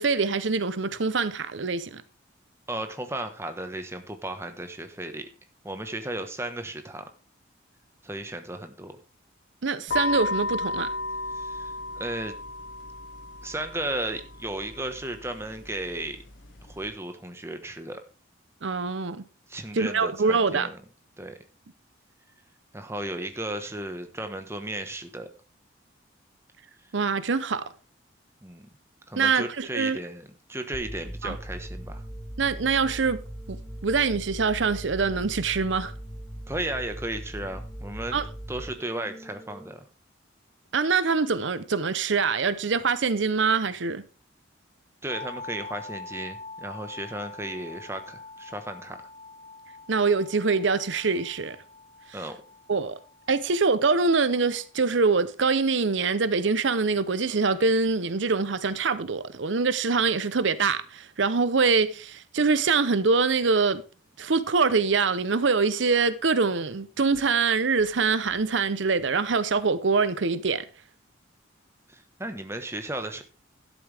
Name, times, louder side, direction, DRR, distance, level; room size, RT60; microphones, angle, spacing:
voice 1, 0.0-2.0 9.6-10.9 18.6-19.2 19.7-20.7 26.9-27.6 29.2-30.0 31.2-31.4 32.4-33.2 33.5-33.6 33.8-35.9 38.1-38.3 40.7-44.0 49.9-51.6 52.7-52.9 53.3-63.8 64.2-70.6, right 4 dB, 75° right, 0.7 m, -24 dB
voice 2, 2.7-5.3 5.6-7.0 8.0-9.0 11.3-12.3 13.4-16.2 16.7-18.0 19.5-20.8 21.2-21.4 22.7-25.3 28.4-28.7 29.1-32.0 36.5-38.2 38.5-39.9 45.0-49.0 52.1-52.4 71.9-73.2, right 1 dB, 15° right, 1.3 m, -34 dB
sound 1, 9.9-16.9, left 2 dB, 80° left, 2.8 m, -34 dB
sound 2, 30.7-39.7, right 1 dB, 10° left, 1.2 m, -39 dB
sound 3, 45.1-54.8, left 3 dB, 50° right, 2.6 m, -44 dB
12.5 x 11.0 x 3.4 m
head